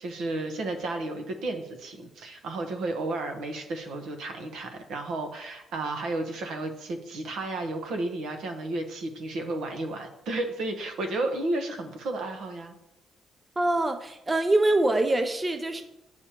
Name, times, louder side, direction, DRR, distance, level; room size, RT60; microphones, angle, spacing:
voice 1, 0.0-12.7, right 2 dB, 75° right, 5 dB, 1.1 m, -32 dB
voice 2, 13.6-15.8, right 2 dB, 20° right, 7 dB, 0.6 m, -24 dB
8.6 x 6.3 x 3.0 m, 0.88 s
cardioid pair, 90°, 0 cm